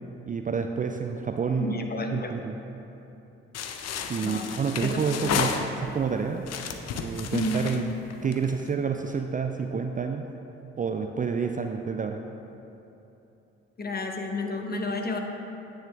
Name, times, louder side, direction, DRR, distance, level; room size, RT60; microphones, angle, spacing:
voice 1, 0.3-1.8 2.1-2.6 4.1-6.5 6.9-7.9 8.2-10.3 10.8-12.2, right 5 dB, 25° right, 5 dB, 0.4 m, -29 dB
voice 2, 1.6-2.3 4.2-4.5 4.8-5.4 7.3-7.6 13.8-15.2, left 2 dB, 30° left, 3 dB, 0.9 m, -31 dB
sound 1, 3.5-6.0 6.4-8.7, left 6 dB, 55° left, 0.6 m, -32 dB
9.0 x 6.4 x 3.4 m, 2.9 s
hypercardioid pair, 45°, 32 cm